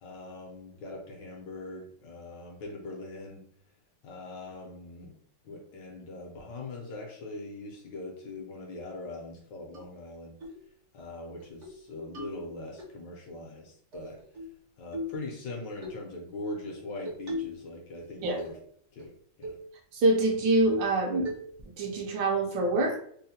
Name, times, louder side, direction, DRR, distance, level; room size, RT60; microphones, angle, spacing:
voice 1, 0.0-3.4 4.0-5.1 5.4-10.3 10.9-14.2 14.8-18.6 18.9-19.1 19.4-19.6, left 2 dB, 70° left, 0 dB, 1.2 m, -41 dB
sound 1, 9.7-9.8 10.4-10.6 11.0-11.1 11.4-11.8 12.1-12.9 13.9-14.6 14.9-15.2 15.8-16.0 17.1-17.6 18.0-18.6 19.0-19.1 19.4-19.7 20.1-20.2 20.7-21.0 21.3-21.7, left 1 dB, 55° right, 0.8 m, -38 dB
voice 2, 19.9-21.3 21.8-23.0, right 2 dB, 70° right, 1 dB, 1.3 m, -25 dB
3.7 x 2.1 x 2.7 m, 0.62 s
omnidirectional pair, 2.2 m